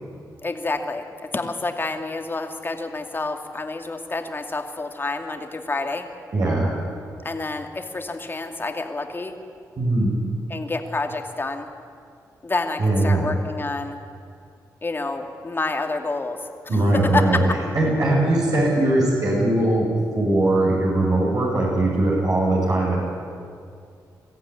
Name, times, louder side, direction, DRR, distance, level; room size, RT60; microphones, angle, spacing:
voice 1, 0.4-6.1 7.2-9.4 10.5-11.7 12.4-14.0 14.8-16.5 16.9-17.4, left 3 dB, 30° left, 5 dB, 2.4 m, -28 dB
voice 2, 6.3-6.7 9.8-10.2 12.8-13.3 16.7-17.4 17.7-19.9 20.1-23.0, right 2 dB, 60° right, -5 dB, 6.9 m, -20 dB
22.5 x 14.5 x 9.8 m, 2.3 s
cardioid pair, 70°, 7 cm